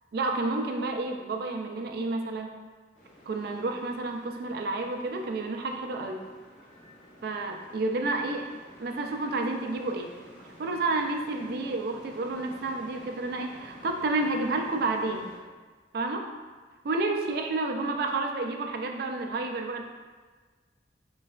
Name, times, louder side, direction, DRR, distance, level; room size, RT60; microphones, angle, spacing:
voice 1, 0.1-2.5 3.3-6.2 7.2-8.5 8.8-10.1 10.6-15.3 15.9-16.3 16.8-19.8, right 2 dB, 60° right, 3 dB, 0.4 m, -30 dB
sound 1, 2.9-15.4, equal, 45° left, 1.4 m, -51 dB
3.8 x 3.2 x 2.3 m, 1.4 s
head